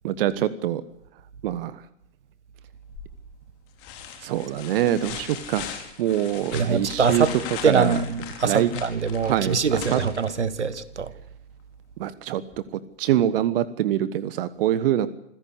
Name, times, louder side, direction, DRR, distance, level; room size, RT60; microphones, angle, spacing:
voice 1, 0.0-0.8 1.4-1.8 4.2-5.7 6.0-8.0 8.4-8.7 9.2-10.0 12.0-12.4 12.7-15.1, right 11 dB, 55° right, 1.3 m, -24 dB
sound 1, 2.9-3.3 3.8-10.7 12.5-12.6, left 9 dB, 40° left, 5.1 m, -39 dB
voice 2, 6.5-7.3 7.6-11.1, right 5 dB, 75° right, 1.7 m, -23 dB
26.5 x 16.5 x 8.3 m
figure-of-eight pair, 95°, 35 cm